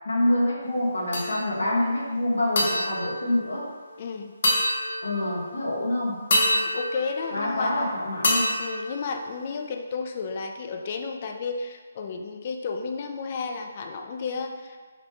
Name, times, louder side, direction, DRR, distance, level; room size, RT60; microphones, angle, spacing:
voice 1, 0.0-3.7 5.0-6.2 7.3-8.6, left 1 dB, 90° left, -4 dB, 1.4 m, -26 dB
sound 1, 1.1-1.7 2.6-4.0 4.4-5.5 6.3-7.8 8.2-9.7, left 1 dB, 60° left, 1.1 m, -27 dB
voice 2, 4.0-4.3 6.5-7.7 8.6-14.8, left 4 dB, 40° left, 4 dB, 0.5 m, -32 dB
5.0 x 2.3 x 4.5 m, 1.4 s
hypercardioid pair, 155°, 0 cm